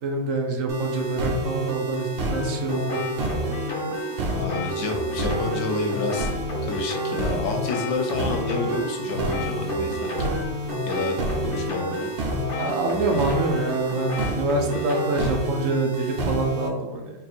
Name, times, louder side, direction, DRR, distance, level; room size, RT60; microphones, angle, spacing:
voice 1, 0.0-3.0 12.6-17.1, right 2 dB, 80° right, 2 dB, 1.1 m, -26 dB
sound 1, 0.7-16.7, right 2 dB, 55° right, 0.8 m, -29 dB
sound 2, 2.3-15.5, left 1 dB, 50° left, 1.0 m, -32 dB
voice 2, 4.3-6.3 6.6-10.4 10.9-12.1, left 3 dB, 75° left, 3 dB, 0.9 m, -29 dB
3.7 x 2.5 x 4.2 m, 1.1 s
omnidirectional pair, 1.3 m